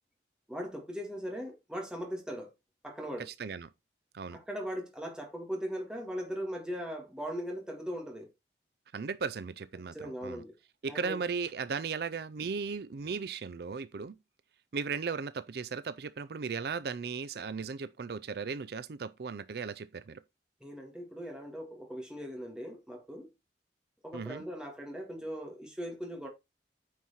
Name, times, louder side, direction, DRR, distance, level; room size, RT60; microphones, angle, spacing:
voice 1, 0.5-2.5 2.8-3.3 4.3-8.3 9.9-10.5 10.9-11.2 20.6-23.3 24.0-26.3, equal, 5° right, 1.9 m, -39 dB
voice 2, 3.3-3.7 4.1-4.4 8.9-10.0 10.2-10.4 10.8-14.2 14.7-20.2 24.1-24.4, right 5 dB, 60° right, 0.4 m, -36 dB
9.3 x 4.7 x 4.3 m
head